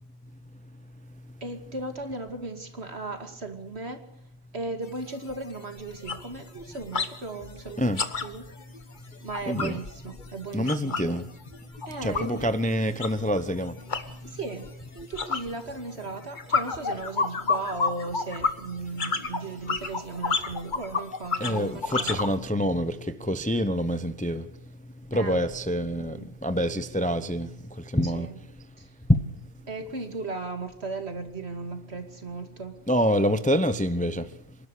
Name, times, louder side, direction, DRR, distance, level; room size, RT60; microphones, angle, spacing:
voice 1, 1.4-4.0 4.5-7.9 8.2-8.5 9.2-11.2 11.9-12.5 14.2-14.7 14.9-22.2 25.1-25.4 25.9-26.3 28.0-28.4 28.8-28.9 29.7-32.8, right 3 dB, 60° right, 2.7 m, -36 dB
sound 1, 4.8-4.9 5.3-5.5 5.8-7.1 7.4-11.2 11.5-22.3, left 4 dB, 40° left, 1.4 m, -31 dB
voice 2, 9.5-9.8 10.5-11.2 12.0-13.7 21.4-22.9 23.3-24.4 25.1-26.2 26.4-27.5 27.9-28.3 29.1-29.2 32.9-34.2, equal, 10° left, 0.7 m, -26 dB
26.5 x 12.0 x 8.3 m
omnidirectional pair, 1.2 m